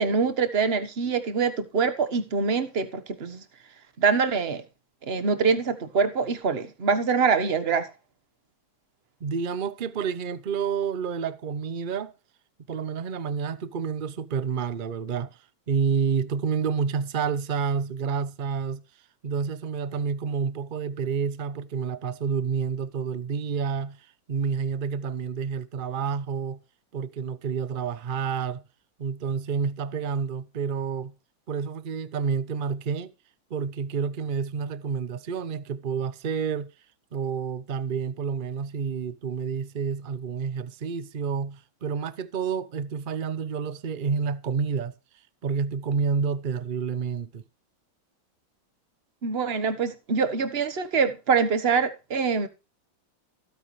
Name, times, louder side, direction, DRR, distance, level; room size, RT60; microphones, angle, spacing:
voice 1, 0.0-3.4 4.0-4.6 5.1-7.9 49.2-52.5, right 5 dB, 35° right, 1.3 m, -24 dB
voice 2, 9.2-12.1 12.7-15.4 15.7-18.8 19.2-24.0 24.3-26.6 26.9-28.6 29.0-31.1 31.5-33.1 33.5-36.7 37.1-44.9 45.4-47.4, right 6 dB, 55° right, 0.5 m, -29 dB
15.5 x 9.6 x 3.2 m
omnidirectional pair, 2.1 m